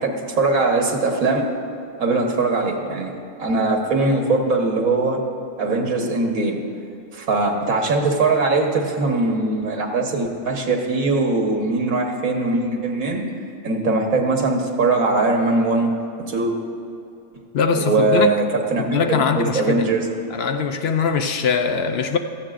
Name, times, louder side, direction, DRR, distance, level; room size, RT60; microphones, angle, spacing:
voice 1, 0.0-1.5 2.0-5.2 5.6-6.6 7.1-13.2 13.6-15.9 16.3-16.5 17.7-20.1, right 3 dB, 90° right, 2 dB, 1.7 m, -21 dB
voice 2, 17.5-18.4 18.8-19.9 20.3-22.2, left 5 dB, 60° left, 7 dB, 0.7 m, -21 dB
16.5 x 13.5 x 2.5 m, 2.7 s
omnidirectional pair, 1.4 m